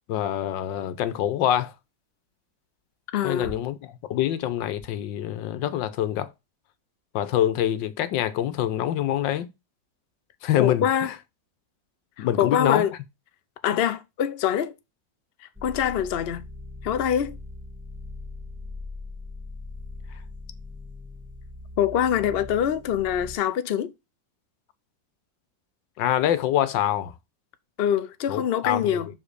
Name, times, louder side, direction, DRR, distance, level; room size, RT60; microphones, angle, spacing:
voice 1, 0.1-1.7 3.2-6.3 7.1-9.5 10.4-11.1 12.2-12.8 26.0-27.1 28.3-29.0, left 11 dB, 85° left, 1.5 m, -25 dB
sound 1, 0.6-6.2, left 1 dB, 35° left, 2.2 m, -49 dB
voice 2, 3.1-3.5 10.6-11.1 12.2-12.9 13.6-14.7 15.6-16.5 16.8-17.4 21.8-23.9 27.8-29.1, left 9 dB, 70° left, 0.5 m, -24 dB
sound 2, 15.5-23.4, left 2 dB, 5° right, 1.2 m, -40 dB
5.8 x 5.0 x 6.7 m
omnidirectional pair, 2.0 m